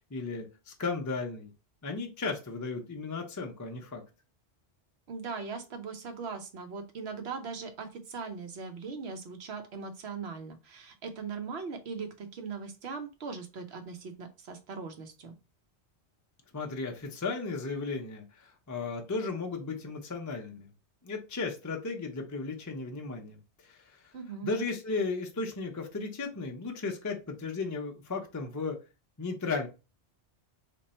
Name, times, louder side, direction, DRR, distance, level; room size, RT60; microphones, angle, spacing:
voice 1, 0.1-1.5 1.8-4.0 16.5-20.7 21.0-23.4 23.6-24.0 24.4-28.8 29.2-29.7, left 4 dB, 25° left, 2 dB, 0.4 m, -35 dB
voice 2, 5.1-15.3 24.1-24.5, right 5 dB, 70° right, 6 dB, 1.0 m, -40 dB
2.9 x 2.6 x 4.2 m, 0.29 s
omnidirectional pair, 1.1 m